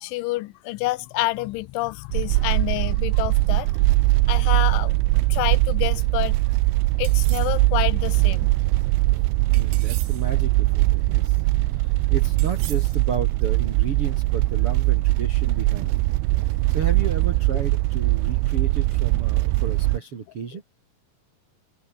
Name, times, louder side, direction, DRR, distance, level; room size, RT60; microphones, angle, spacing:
voice 1, 0.0-3.7 4.3-4.9 5.3-6.4 7.0-8.5, left 20 dB, 90° left, 3.2 m, -28 dB
sound 1, 2.1-20.0, right 20 dB, 85° right, 3.2 m, -21 dB
sound 2, 7.0-7.6 9.5-10.3 12.4-13.0, right 13 dB, 65° right, 2.6 m, -41 dB
voice 2, 9.1-11.4 11.7-11.8 12.1-16.0 16.7-20.6, right 5 dB, 35° right, 2.6 m, -33 dB
omnidirectional pair, 5.4 m